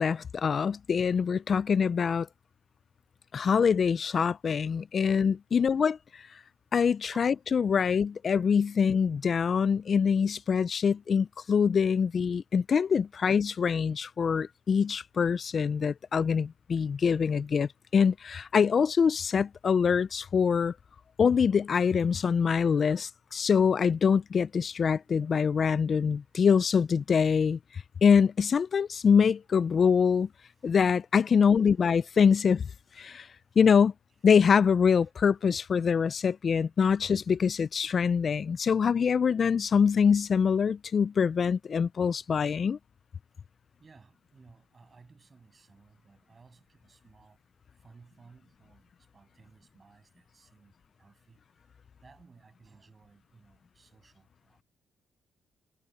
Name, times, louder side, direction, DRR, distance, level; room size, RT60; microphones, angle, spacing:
voice 1, 0.0-2.3 3.3-6.2 6.7-20.7 21.2-27.6 28.0-30.3 30.6-32.6 33.0-33.3 33.6-33.9 34.2-42.8, left 6 dB, 45° left, 0.3 m, -24 dB
voice 2, 43.8-47.4 47.8-51.4 52.0-54.6, right 4 dB, 35° right, 7.8 m, -58 dB
cardioid pair, 90°, 0 cm